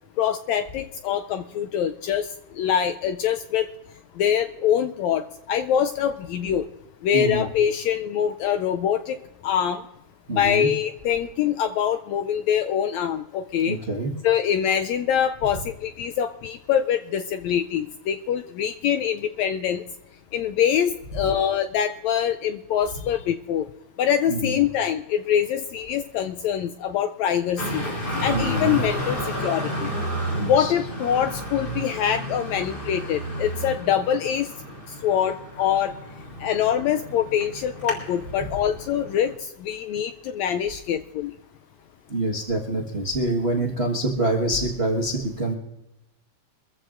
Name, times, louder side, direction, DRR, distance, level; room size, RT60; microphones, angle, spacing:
voice 1, 0.2-2.3 2.5-3.7 4.2-5.2 5.5-6.6 7.0-9.2 9.4-9.8 10.3-13.8 14.2-19.8 20.3-23.7 24.0-27.8 28.2-29.9 30.5-34.5 35.0-35.9 36.4-39.3 39.6-41.3, left 9 dB, 80° left, 8 dB, 1.6 m, -24 dB
voice 2, 7.1-7.5 10.3-10.7 13.7-14.1 24.3-24.6 28.3-28.8 30.3-30.7 42.1-45.5, right 1 dB, 50° right, -1 dB, 0.7 m, -26 dB
Traffic noise roadway noise, 27.6-39.3, right 1 dB, 15° left, 3.8 m, -32 dB
24.0 x 14.5 x 2.5 m, 0.95 s
omnidirectional pair, 3.6 m